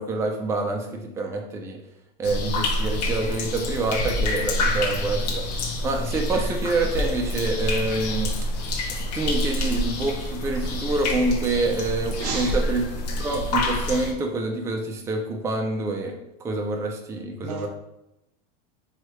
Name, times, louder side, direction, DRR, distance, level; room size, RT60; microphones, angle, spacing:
voice 1, 0.0-1.8 2.2-8.5 9.1-12.8 13.2-17.7, right 2 dB, 15° right, 0.4 m, -27 dB
sound 1, 2.2-14.1, left 1 dB, 75° left, 0.6 m, -27 dB
voice 2, 12.2-12.7 17.4-17.7, right 5 dB, 70° right, 0.6 m, -31 dB
3.0 x 2.3 x 2.8 m
supercardioid pair, 105°, 21 cm